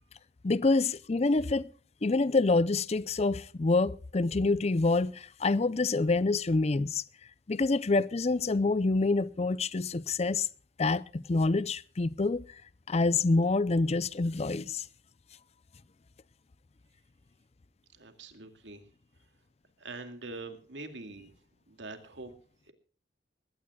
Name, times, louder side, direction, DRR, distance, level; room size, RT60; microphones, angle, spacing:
voice 1, 0.4-1.7 2.0-7.0 7.5-10.5 10.8-12.4 12.9-14.8, left 3 dB, 35° left, 0.5 m, -27 dB
voice 2, 17.9-18.8 19.8-21.3 21.7-22.3 22.7-22.8, right 3 dB, 85° right, 2.2 m, -44 dB
21.0 x 17.0 x 2.3 m
head